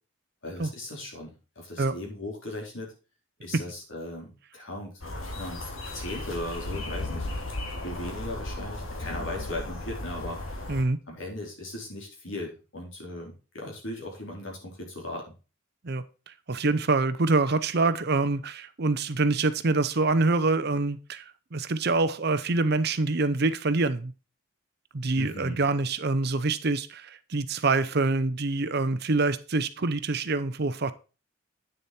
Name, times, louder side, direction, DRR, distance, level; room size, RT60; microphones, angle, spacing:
voice 1, 0.4-2.9 3.4-4.9 5.4-7.3 7.8-10.4 11.1-15.2 25.2-25.6, left 1 dB, 70° left, 4.1 m, -38 dB
sound 1, 5.0-10.8, left 2 dB, 90° left, 2.4 m, -35 dB
voice 2, 15.8-24.1 24.9-30.9, right 3 dB, 50° right, 0.7 m, -26 dB
9.2 x 6.8 x 4.3 m
head